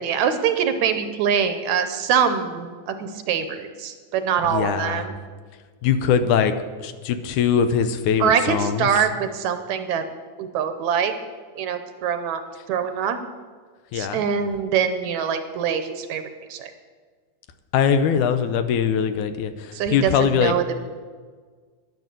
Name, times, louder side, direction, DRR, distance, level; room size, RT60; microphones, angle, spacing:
voice 1, 0.0-5.2 8.2-10.0 10.4-11.1 11.6-12.4 12.7-13.2 13.9-16.2 16.5-16.7 19.7-20.6, right 7 dB, 75° right, 9 dB, 2.0 m, -24 dB
voice 2, 4.4-5.1 5.8-6.6 6.8-9.0 13.9-14.2 17.7-20.5, left 7 dB, 75° left, 10 dB, 2.1 m, -22 dB
11.0 x 10.5 x 7.6 m, 1.6 s
omnidirectional pair, 3.7 m